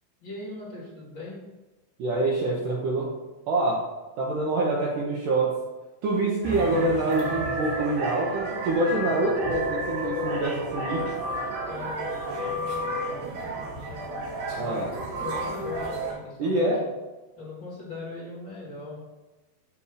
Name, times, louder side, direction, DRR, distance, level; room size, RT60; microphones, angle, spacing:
voice 1, 0.2-1.4 11.7-14.8 15.2-16.7 17.4-19.0, left 2 dB, 35° left, -6 dB, 2.9 m, -40 dB
voice 2, 2.0-3.1 3.5-3.8 4.2-5.6 6.0-11.1 14.5-14.9 16.4-16.9, right 2 dB, 70° right, -2 dB, 2.1 m, -26 dB
sound 1, 6.4-16.1, right 1 dB, 55° right, 2.2 m, -31 dB
7.1 x 4.3 x 4.9 m, 1.1 s
omnidirectional pair, 4.3 m